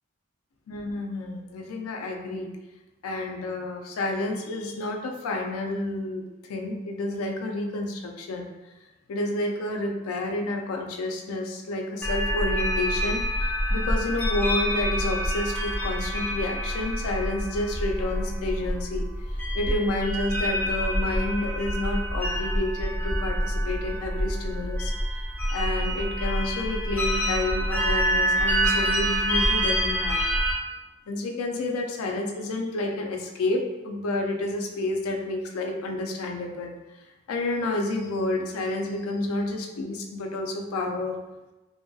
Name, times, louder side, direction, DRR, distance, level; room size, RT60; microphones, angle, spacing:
voice 1, 0.7-2.5 3.0-8.5 9.1-19.0 19.5-24.9 25.5-30.3 31.1-36.7 37.3-41.2, left 2 dB, 85° left, 2 dB, 0.4 m, -30 dB
sound 1, 12.0-30.5, equal, 10° left, 0.3 m, -27 dB
2.7 x 2.2 x 2.6 m, 1.1 s
head